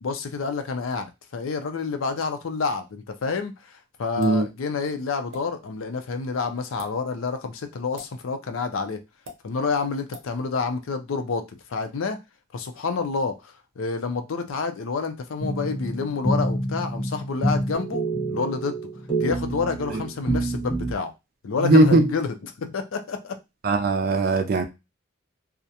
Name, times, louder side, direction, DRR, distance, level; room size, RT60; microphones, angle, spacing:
voice 1, 0.0-9.0 9.4-12.2 12.5-18.0 18.3-18.8 19.2-21.1 21.4-22.3 22.6-23.4, left 4 dB, 80° left, 0.5 m, -28 dB
voice 2, 4.2-4.5 19.9-20.0 21.6-22.1 23.6-24.6, right 2 dB, 45° right, 0.4 m, -19 dB
sound 1, 4.2-4.4 5.3-5.4 6.7-6.9 8.0-8.1 9.2-9.4 10.1-10.3, equal, 80° right, 0.7 m, -41 dB
sound 2, 15.4-20.9, right 2 dB, 20° left, 0.8 m, -27 dB
2.4 x 2.1 x 2.7 m
head